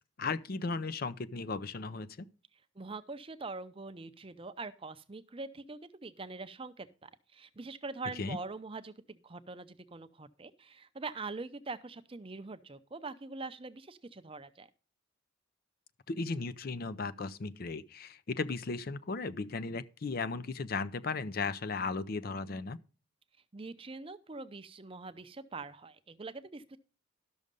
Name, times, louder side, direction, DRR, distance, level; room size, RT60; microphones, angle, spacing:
voice 1, 0.2-2.3 8.2-8.4 16.1-22.8, left 4 dB, 45° left, 0.5 m, -36 dB
voice 2, 2.8-14.7 23.5-26.8, right 3 dB, 25° right, 0.6 m, -43 dB
12.5 x 6.4 x 5.2 m
head